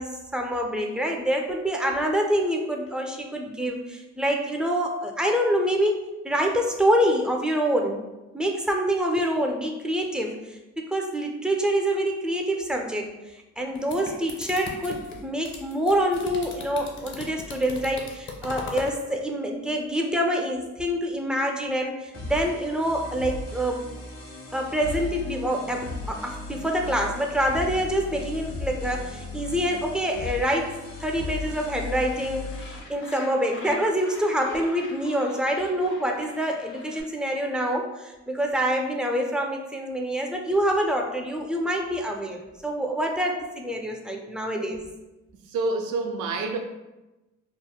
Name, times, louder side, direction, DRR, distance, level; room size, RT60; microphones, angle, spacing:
voice 1, 0.0-8.0 8.3-23.8 24.5-32.5 32.9-44.8, equal, 5° right, 2 dB, 0.3 m, -26 dB
sound 1, 13.6-19.0, left 3 dB, 40° left, 0.6 m, -38 dB
sound 2, 22.1-32.8, left 3 dB, 55° left, 1.0 m, -36 dB
Gull seagull, 32.0-37.0, left 2 dB, 80° left, 0.8 m, -45 dB
voice 2, 45.4-46.6, right 3 dB, 85° right, 4 dB, 0.5 m, -28 dB
3.5 x 2.0 x 2.2 m, 1.0 s
cardioid pair, 90°, 30 cm